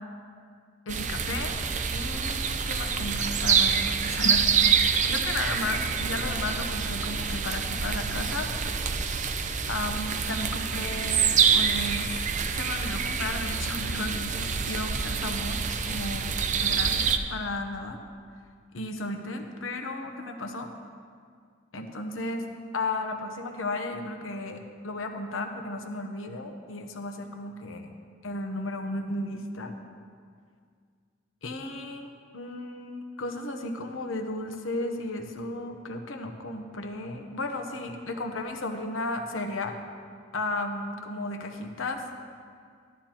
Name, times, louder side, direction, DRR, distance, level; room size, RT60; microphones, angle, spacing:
voice 1, 0.9-1.6 1.9-8.5 9.7-12.1 12.5-16.3 16.6-18.0 18.7-20.7 21.7-22.5 22.7-27.9 28.2-29.7 31.4-39.8 40.3-42.1, left 2 dB, 85° left, 4 dB, 0.9 m, -34 dB
sound 1, 0.9-17.2, right 6 dB, 40° right, 0.5 m, -27 dB
14.5 x 11.5 x 2.9 m, 2.1 s
head